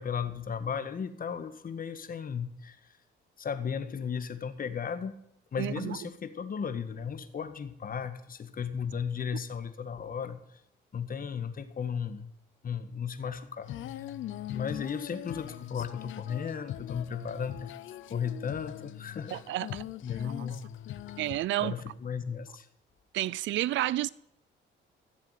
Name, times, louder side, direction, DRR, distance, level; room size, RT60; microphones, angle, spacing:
voice 1, 0.0-2.8 3.4-5.1 5.5-10.6 10.9-12.3 12.6-14.1 14.5-17.7 18.1-19.4 20.0-20.6 21.6-22.7, left 7 dB, 45° left, 1.7 m, -35 dB
voice 2, 5.6-6.0 19.3-19.8 20.2-20.3 21.2-21.7 23.1-24.1, right 15 dB, 75° right, 0.5 m, -30 dB
Female singing, 13.6-21.4, left 12 dB, 80° left, 0.8 m, -41 dB
14.5 x 7.4 x 9.2 m
cardioid pair, 90°, 20 cm